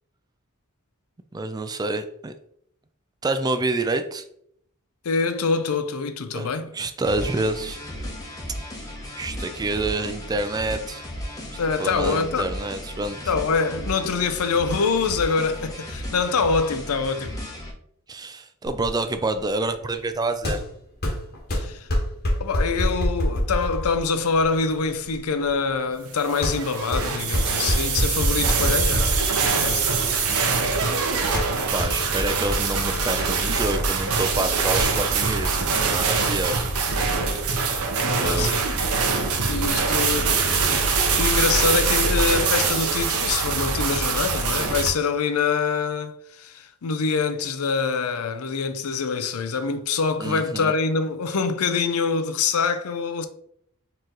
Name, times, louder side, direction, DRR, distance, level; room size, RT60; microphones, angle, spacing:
voice 1, 1.3-2.3 3.2-4.3 6.3-6.5 6.7-7.8 9.2-11.0 11.8-13.2 18.1-20.6 31.7-36.6 38.2-38.5 50.2-50.7, right 2 dB, 20° right, 0.3 m, -27 dB
voice 2, 5.0-6.7 11.6-12.5 13.3-17.4 21.5-21.9 22.4-29.1 29.4-29.9 38.1-38.6 39.5-53.3, left 5 dB, 80° left, 0.5 m, -25 dB
sound 1, 7.0-17.7, left 1 dB, 15° left, 1.0 m, -35 dB
sound 2, 18.6-34.8, equal, 45° left, 1.2 m, -28 dB
sound 3, 26.2-44.9, right 4 dB, 80° right, 0.8 m, -23 dB
4.5 x 3.1 x 3.8 m
head